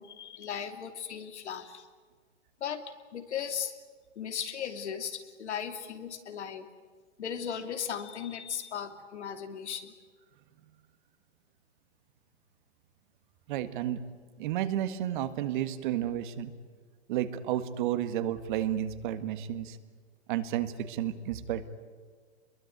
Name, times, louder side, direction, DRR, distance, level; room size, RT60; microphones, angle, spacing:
voice 1, 0.0-1.9 2.6-2.8 3.1-3.8 4.2-6.7 7.2-9.9, left 8 dB, 75° left, 7 dB, 3.0 m, -37 dB
voice 2, 13.5-14.0 14.4-16.5 17.1-19.8 20.3-21.7, right 11 dB, 45° right, 11 dB, 1.7 m, -31 dB
25.5 x 22.5 x 9.4 m, 1.5 s
hypercardioid pair, 145°, 34 cm